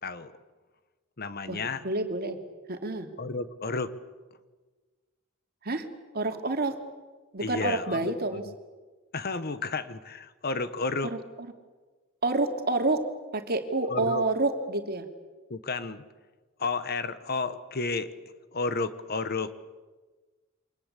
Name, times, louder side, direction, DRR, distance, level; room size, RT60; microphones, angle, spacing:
voice 1, 0.0-0.4 1.2-1.8 3.2-3.9 7.4-8.5 9.1-11.1 13.9-14.2 15.5-16.0 16.6-18.1 18.5-19.5, left 3 dB, 50° left, 13 dB, 1.3 m, -32 dB
voice 2, 1.5-2.4 2.7-3.1 5.6-5.9 6.1-6.8 7.3-8.4 11.1-11.2 12.2-13.0 13.3-15.1, right 2 dB, 50° right, 5 dB, 2.8 m, -28 dB
28.5 x 24.5 x 8.3 m, 1.3 s
head